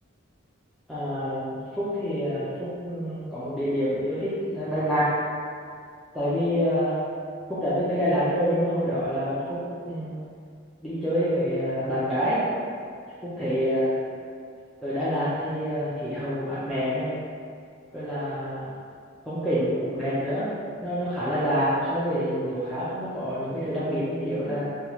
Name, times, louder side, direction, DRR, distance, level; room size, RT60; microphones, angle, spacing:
voice 1, 0.9-5.1 6.1-7.0 7.5-10.2 10.8-12.4 13.2-13.9 14.8-17.1 17.9-18.7 19.3-20.5 20.8-24.6, equal, ahead, -14 dB, 0.4 m, -27 dB
3.0 x 2.3 x 2.9 m, 2.2 s
head